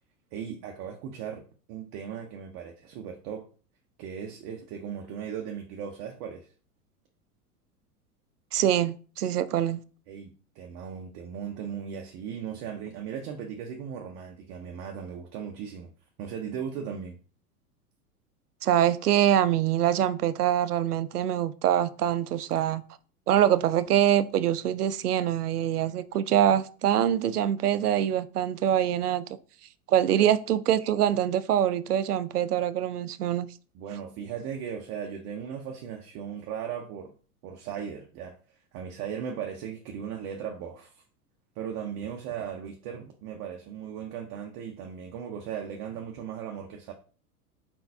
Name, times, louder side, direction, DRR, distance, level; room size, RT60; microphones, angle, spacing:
voice 1, 0.3-1.4 1.7-3.5 4.0-6.5 10.1-15.9 16.2-17.2 30.1-30.3 33.7-37.1 37.4-38.3 38.7-41.0 41.6-46.9, right 8 dB, 35° right, 0.7 m, -37 dB
voice 2, 8.5-9.8 18.6-22.8 23.3-29.2 29.9-33.5, right 11 dB, 75° right, 0.5 m, -24 dB
4.5 x 3.8 x 2.6 m
figure-of-eight pair, 90°, 46 cm